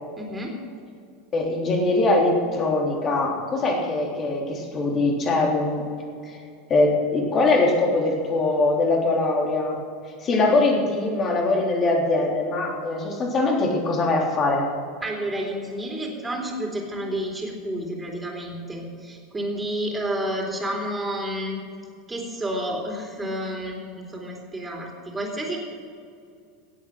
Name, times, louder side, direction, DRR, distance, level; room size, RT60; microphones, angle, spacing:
voice 1, 0.2-0.6 15.0-21.6 22.1-25.6, right 1 dB, 15° right, 0 dB, 3.8 m, -30 dB
voice 2, 1.3-5.9 6.3-6.4 6.7-9.8 10.2-14.7, left 2 dB, 35° left, 0 dB, 3.5 m, -22 dB
17.0 x 8.6 x 6.5 m, 2.4 s
figure-of-eight pair, 85°, 0 cm